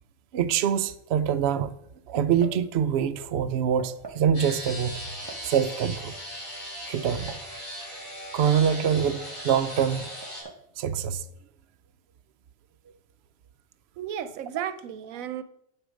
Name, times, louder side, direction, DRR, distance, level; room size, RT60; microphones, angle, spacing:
voice 1, 0.3-1.7 2.1-5.0 5.3-6.1 6.9-7.3 8.3-10.1 10.8-11.2, right 8 dB, 60° right, 0.8 m, -25 dB
sound 1, 2.2-2.7 3.8-4.3 5.3-5.8 6.8-7.5 8.5-9.0 9.2-9.3 10.2-10.6, right 4 dB, 25° right, 0.6 m, -43 dB
sound 2, 4.3-10.4, equal, 25° left, 4.6 m, -38 dB
voice 2, 14.0-15.4, right 9 dB, 85° right, 1.1 m, -33 dB
8.2 x 8.1 x 5.1 m
omnidirectional pair, 1.4 m